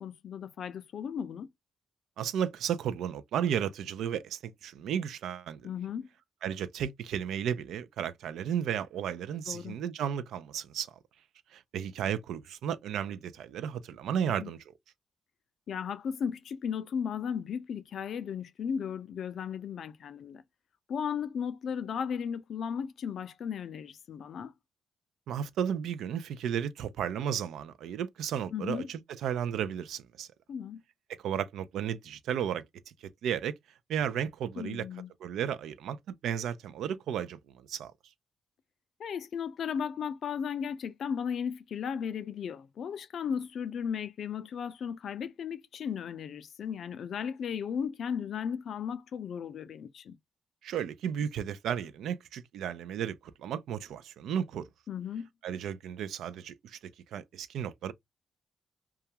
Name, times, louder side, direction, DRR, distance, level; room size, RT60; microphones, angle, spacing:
voice 1, 0.0-1.5 5.6-6.1 9.5-9.8 14.4-14.5 15.7-20.4 20.9-24.5 28.5-28.9 30.5-30.8 34.6-35.1 39.0-50.2 54.9-55.3, left 7 dB, 65° left, 0.4 m, -35 dB
voice 2, 2.2-5.6 6.4-10.9 11.5-14.6 25.3-30.3 31.2-32.6 33.2-33.5 33.9-34.9 35.2-37.4 37.7-37.9 50.6-54.6 55.4-56.8 57.1-57.9, right 9 dB, 85° right, 0.3 m, -33 dB
2.3 x 2.2 x 2.7 m
cardioid pair, 95°, 0 cm